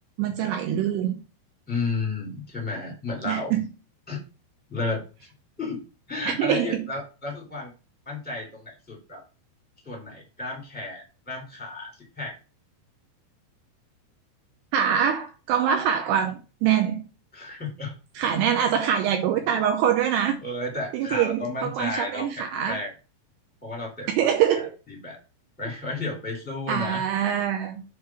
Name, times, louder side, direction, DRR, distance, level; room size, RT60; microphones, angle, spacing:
voice 1, 0.2-1.2 3.3-3.6 6.3-6.8 14.7-17.0 18.2-20.4 20.9-22.8 24.2-24.7 26.7-27.8, right 9 dB, 85° right, 2.5 m, -24 dB
voice 2, 1.7-3.6 4.1-4.2 4.7-5.0 5.6-5.8 6.1-7.7 8.0-9.2 9.8-11.9 12.2-12.3 17.3-17.9 20.4-22.9 23.6-24.3 24.5-25.2 25.6-27.0, left 3 dB, 5° left, 0.7 m, -32 dB
7.6 x 3.7 x 5.9 m
omnidirectional pair, 5.6 m